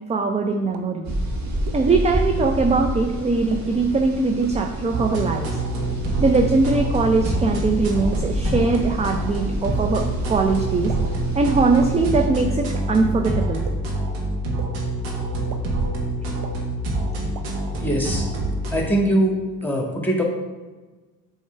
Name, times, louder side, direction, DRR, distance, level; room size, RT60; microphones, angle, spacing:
voice 1, 0.1-1.1 1.7-5.5 6.2-10.9 11.3-13.6, right 3 dB, 15° right, 3 dB, 0.4 m, -21 dB
sound 1, 0.7-0.8 1.7-1.8 2.6-2.7 3.5-3.6 4.4-4.5 5.3-5.4 6.3-6.4 7.2-7.3 8.1-8.2 9.0-9.1 10.0-10.1 10.9-11.0 11.8-11.9 12.7-12.8 13.7-13.8 14.6-14.7 15.5-15.6 16.4-16.5 17.3-17.4, right 8 dB, 55° right, 0.8 m, -36 dB
sound 2, 1.0-12.3, equal, 40° right, 1.6 m, -29 dB
sound 3, 4.9-18.8, right 1 dB, 75° right, 1.5 m, -26 dB
voice 2, 17.8-18.3 18.7-19.4 19.6-20.2, right 1 dB, 5° left, -1 dB, 2.0 m, -21 dB
7.1 x 3.4 x 4.5 m, 1.3 s
hypercardioid pair, 60°, 45 cm